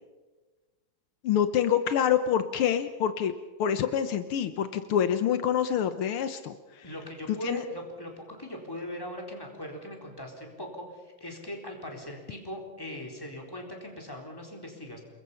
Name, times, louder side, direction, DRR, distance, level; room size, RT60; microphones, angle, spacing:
voice 1, 1.2-3.3 3.6-6.8 7.4-7.6, left 9 dB, 80° left, 10 dB, 1.9 m, -26 dB
voice 2, 6.8-15.0, equal, 10° left, 1 dB, 4.1 m, -40 dB
29.0 x 21.5 x 5.8 m, 1.3 s
omnidirectional pair, 2.4 m